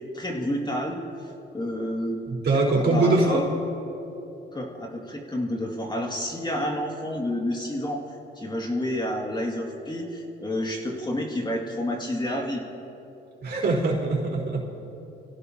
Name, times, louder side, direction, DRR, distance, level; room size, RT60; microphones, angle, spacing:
voice 1, 0.1-1.0 1.5-2.2 2.7-3.4 4.5-8.0 8.4-12.6, left 1 dB, 20° left, 0 dB, 2.2 m, -29 dB
voice 2, 2.3-3.5 13.4-14.6, right 2 dB, 55° right, -3 dB, 4.2 m, -22 dB
26.5 x 16.5 x 2.9 m, 2.9 s
cardioid pair, 90°, 20 cm